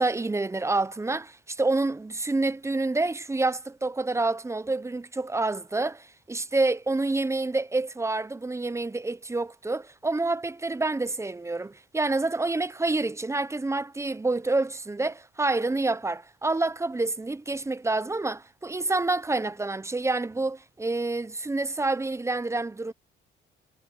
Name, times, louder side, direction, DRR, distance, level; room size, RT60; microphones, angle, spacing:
voice 1, 0.0-22.9, right 2 dB, 15° right, 0.7 m, -28 dB
cardioid pair, 90°, 20 cm